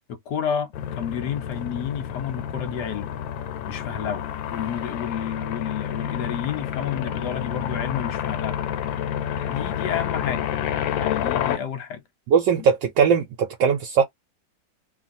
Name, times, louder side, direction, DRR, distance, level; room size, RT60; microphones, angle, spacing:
voice 1, 0.1-3.1 3.7-8.6 9.3-10.5 11.0-12.0, left 8 dB, 70° left, 1.3 m, -31 dB
sound 1, 0.7-11.6, left 9 dB, 90° left, 1.4 m, -29 dB
voice 2, 12.3-14.0, right 6 dB, 75° right, 1.3 m, -20 dB
3.0 x 2.4 x 2.6 m
omnidirectional pair, 2.0 m